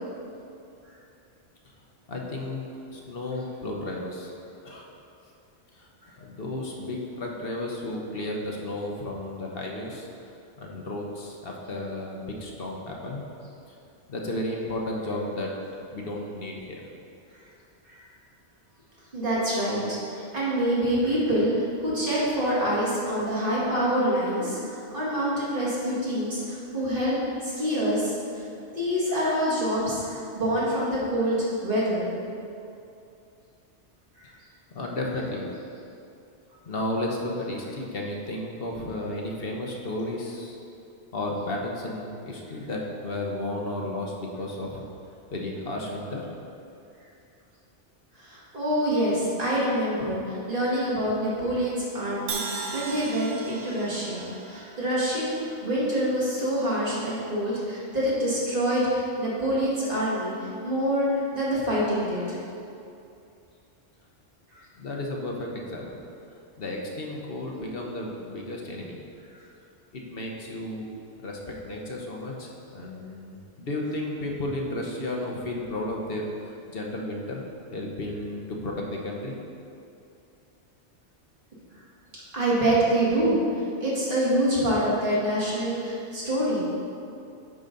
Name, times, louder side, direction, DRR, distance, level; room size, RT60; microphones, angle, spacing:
voice 1, 2.1-2.6 2.9-4.3 4.6-4.9 5.7-5.9 6.2-10.1 10.6-13.2 13.7-13.8 14.1-15.5 15.9-16.9 34.7-35.5 36.7-40.6 41.1-44.8 45.3-46.3 64.8-66.0 66.6-69.0 69.9-70.9 71.2-77.4 77.7-79.3, left 1 dB, 60° left, -1 dB, 1.1 m, -33 dB
voice 2, 19.1-21.5 21.8-27.1 27.4-28.5 28.7-32.1 34.2-34.3 48.2-52.4 52.7-55.4 55.6-60.3 60.6-61.1 61.3-62.4 64.5-64.6 82.3-83.4 83.8-86.6, right 1 dB, 50° right, -8 dB, 2.2 m, -26 dB
Crash cymbal, 52.3-56.3, right 4 dB, 80° right, 1.1 m, -38 dB
9.5 x 4.0 x 5.3 m, 2.6 s
omnidirectional pair, 1.2 m